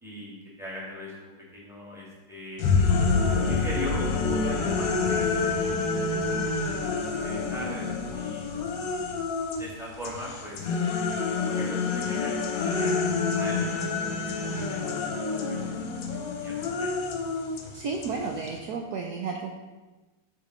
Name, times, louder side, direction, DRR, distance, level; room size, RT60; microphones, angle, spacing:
voice 1, 0.0-2.6 3.3-8.5 9.6-13.0 13.3-14.8 15.5-15.8 16.3-16.9, left 1 dB, ahead, -6 dB, 2.0 m, -40 dB
Boom, 2.6-10.5, left 4 dB, 80° left, 1.5 m, -29 dB
sound 1, 2.6-9.7 10.0-18.6, left 4 dB, 65° left, 1.5 m, -29 dB
voice 2, 17.7-19.5, right 4 dB, 75° right, 1 dB, 0.9 m, -32 dB
6.7 x 5.2 x 5.0 m, 1.2 s
omnidirectional pair, 2.4 m